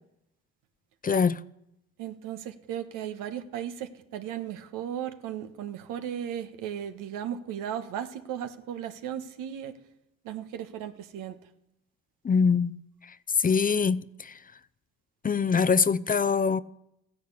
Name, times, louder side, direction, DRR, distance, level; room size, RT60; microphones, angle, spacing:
voice 1, 1.0-1.4 12.2-12.7 13.4-14.3 15.2-16.6, left 5 dB, 25° left, 0.6 m, -23 dB
voice 2, 2.0-9.7 10.2-11.3, right 9 dB, 85° right, 1.4 m, -36 dB
15.0 x 10.5 x 8.4 m
supercardioid pair, 75°, 31 cm